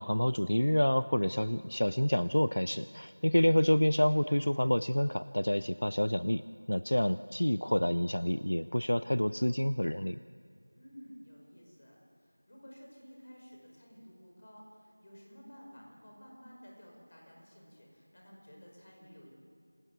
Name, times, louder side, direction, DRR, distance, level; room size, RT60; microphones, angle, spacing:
voice 1, 0.0-6.4 6.7-10.2, equal, 70° left, 15 dB, 0.5 m, -28 dB
voice 2, 10.8-19.3, equal, 30° left, -2 dB, 5.5 m, -53 dB
27.5 x 19.0 x 8.2 m, 2.3 s
figure-of-eight pair, 175°, 0 cm